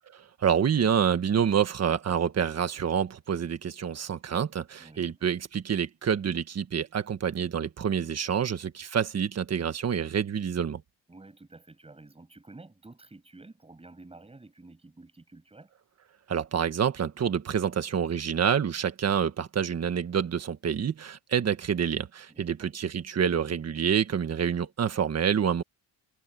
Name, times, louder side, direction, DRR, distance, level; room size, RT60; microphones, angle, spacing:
voice 1, 0.4-10.8 16.3-25.6, right 8 dB, 35° right, 1.5 m, -27 dB
voice 2, 4.8-5.3 11.1-15.7 22.3-22.7, right 2 dB, 10° right, 6.5 m, -51 dB
cardioid pair, 175°, 46 cm